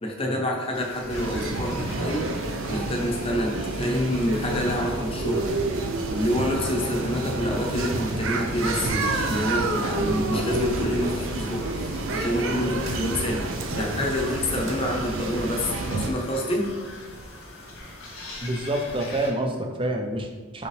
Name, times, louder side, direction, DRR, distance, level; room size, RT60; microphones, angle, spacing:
voice 1, 0.0-2.3 2.7-5.5 6.1-13.5 13.7-16.7, left 1 dB, 25° left, 0 dB, 0.8 m, -27 dB
sound 1, 0.7-19.3, left 1 dB, 80° left, 1.8 m, -42 dB
sound 2, 1.1-16.1, right 2 dB, 70° right, 0.6 m, -29 dB
voice 2, 18.4-20.7, right 1 dB, 25° right, 4 dB, 0.5 m, -27 dB
5.5 x 5.4 x 3.2 m, 1.4 s
head